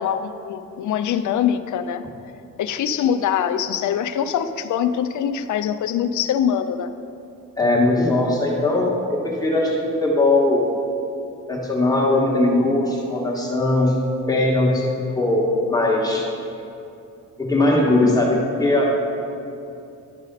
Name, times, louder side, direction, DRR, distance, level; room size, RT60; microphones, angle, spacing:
voice 1, 0.0-2.0 2.6-6.9, left 8 dB, 70° left, 11 dB, 0.5 m, -23 dB
voice 2, 7.6-10.7 11.5-13.9 14.3-16.3 17.4-19.1, left 2 dB, 10° left, -4 dB, 1.2 m, -19 dB
11.5 x 4.1 x 5.2 m, 2.7 s
wide cardioid pair, 140°, 31 cm